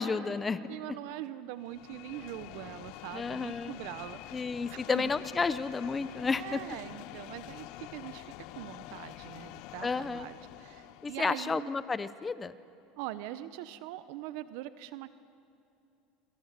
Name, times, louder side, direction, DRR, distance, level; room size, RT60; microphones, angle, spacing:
voice 1, 0.0-0.6 3.1-3.7 4.3-6.6 9.8-10.3 11.0-12.5, left 4 dB, 20° left, 15 dB, 0.8 m, -31 dB
voice 2, 0.7-5.1 6.4-11.7 13.0-15.2, right 14 dB, 70° right, 14 dB, 0.9 m, -42 dB
sound 1, 1.6-11.4, left 16 dB, 65° left, 0.8 m, -47 dB
27.5 x 25.0 x 6.7 m, 2.8 s
supercardioid pair, 115°, 0 cm